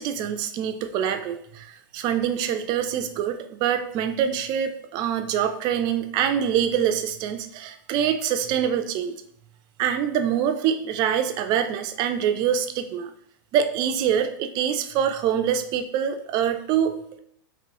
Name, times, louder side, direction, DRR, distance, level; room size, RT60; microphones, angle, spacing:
voice 1, 0.0-9.1 9.8-13.1 13.5-17.0, right 9 dB, 40° right, 8 dB, 0.4 m, -25 dB
2.9 x 2.8 x 3.0 m, 0.71 s
hypercardioid pair, 115°, 11 cm